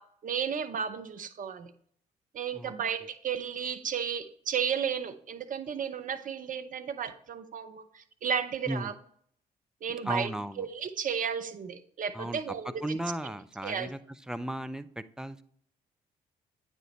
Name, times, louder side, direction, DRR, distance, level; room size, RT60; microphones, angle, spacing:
voice 1, 0.0-1.7 2.3-8.9 9.8-10.3 10.6-13.0 13.2-13.3 13.6-13.9, right 7 dB, 40° right, 10 dB, 0.7 m, -33 dB
voice 2, 10.0-10.7 12.1-14.0 14.3-15.4, right 1 dB, 5° right, 12 dB, 0.4 m, -35 dB
8.9 x 4.3 x 3.1 m, 0.64 s
hypercardioid pair, 45°, 20 cm